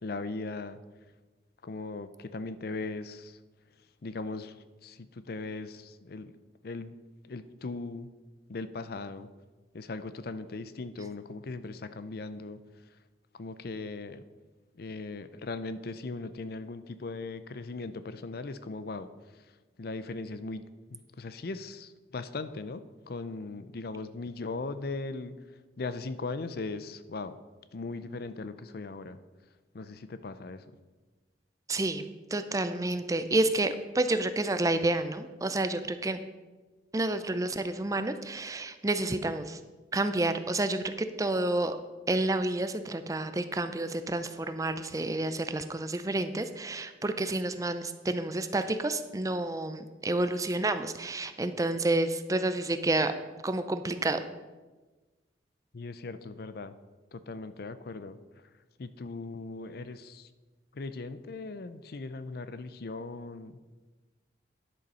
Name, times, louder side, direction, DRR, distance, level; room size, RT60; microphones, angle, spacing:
voice 1, 0.0-0.8 1.6-3.4 4.0-6.4 6.6-6.9 7.2-8.1 8.5-9.3 9.7-12.6 12.9-13.0 13.3-14.2 14.7-19.5 19.8-25.4 25.8-27.4 27.7-29.2 29.7-30.6 55.7-56.8 57.1-58.2 58.8-60.3 60.7-63.6, left 3 dB, 55° left, 12 dB, 0.5 m, -39 dB
voice 2, 31.7-36.2 36.9-39.6 39.9-41.8 42.1-53.1 53.4-54.2, right 2 dB, 20° right, 10 dB, 0.5 m, -29 dB
10.5 x 6.6 x 5.5 m, 1.2 s
head